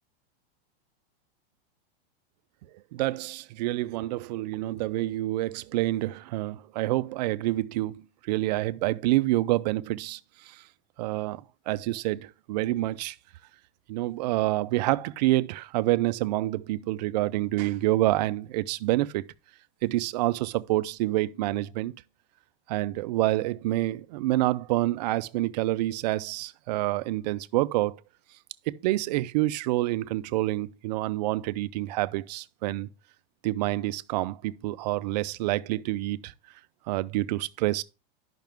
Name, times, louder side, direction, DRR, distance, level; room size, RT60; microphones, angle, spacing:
voice 1, 2.9-10.6 11.0-13.2 13.9-19.2 19.8-21.9 22.7-28.0 28.7-32.9 33.4-36.3 36.9-37.8, right 17 dB, 45° right, 0.4 m, -27 dB
10.5 x 5.8 x 3.5 m
supercardioid pair, 165°, 30 cm